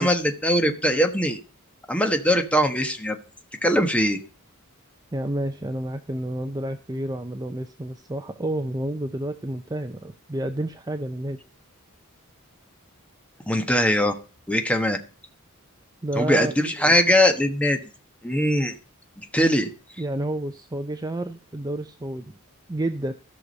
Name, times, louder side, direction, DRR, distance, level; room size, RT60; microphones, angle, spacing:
voice 1, 0.0-1.4 1.9-3.2 3.6-4.2 13.5-14.1 14.5-15.0 16.1-17.8 18.2-18.7 19.2-19.7, equal, 5° left, 6 dB, 1.2 m, -21 dB
voice 2, 5.1-11.4 16.0-16.9 20.0-22.3 22.7-23.1, right 1 dB, 15° right, 8 dB, 0.5 m, -30 dB
14.5 x 6.2 x 5.3 m, 0.37 s
head